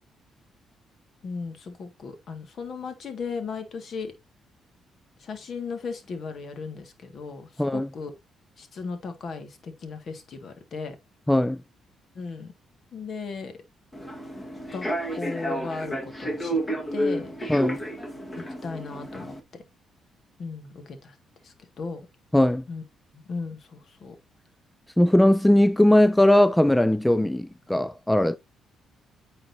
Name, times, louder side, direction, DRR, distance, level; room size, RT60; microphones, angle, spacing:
voice 1, 1.2-4.1 5.2-8.2 8.6-11.0 12.2-12.5 12.9-13.5 14.7-14.9 15.2-16.6 16.9-17.3 18.4-19.6 20.4-21.1 21.4-22.0 22.7-22.8 23.3-24.2, left 4 dB, 55° left, 1.9 m, -36 dB
voice 2, 11.3-11.6 17.5-17.8 22.3-22.6 25.0-28.4, left 1 dB, 5° left, 0.3 m, -19 dB
Human voice / Subway metro underground, 13.9-19.4, equal, 20° left, 1.6 m, -31 dB
8.8 x 4.3 x 2.7 m
cardioid pair, 90°, 0 cm